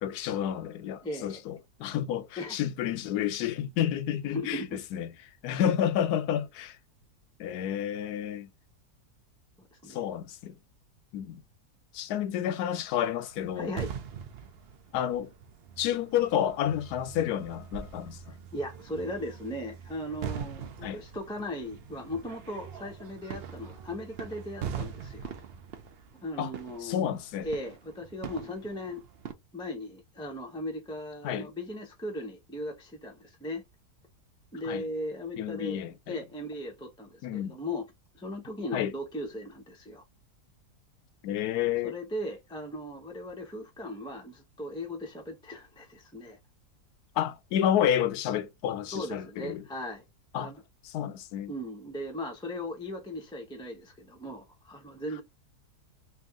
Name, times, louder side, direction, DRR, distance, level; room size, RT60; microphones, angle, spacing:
voice 1, 0.0-5.1 5.4-6.8 7.4-8.5 9.9-10.6 11.1-11.4 11.9-13.7 14.9-15.3 15.8-18.4 20.8-21.0 26.4-26.5 26.8-27.5 31.2-31.5 34.6-34.8 35.4-36.1 37.2-37.5 38.7-38.9 41.2-41.9 47.2-49.6 50.3-50.5 50.8-51.5, left 10 dB, 75° left, 1.1 m, -30 dB
voice 2, 1.0-1.4 2.4-2.6 4.2-4.8 9.8-10.0 13.6-13.9 18.5-25.4 26.2-27.1 27.4-29.0 29.5-33.6 34.5-35.8 36.1-37.9 38.1-40.0 41.8-46.4 48.9-50.0 50.4-50.6 51.5-55.2, left 1 dB, 5° left, 0.4 m, -37 dB
sound 1, 13.3-29.3, right 7 dB, 70° right, 0.5 m, -42 dB
3.5 x 2.7 x 3.5 m
omnidirectional pair, 1.8 m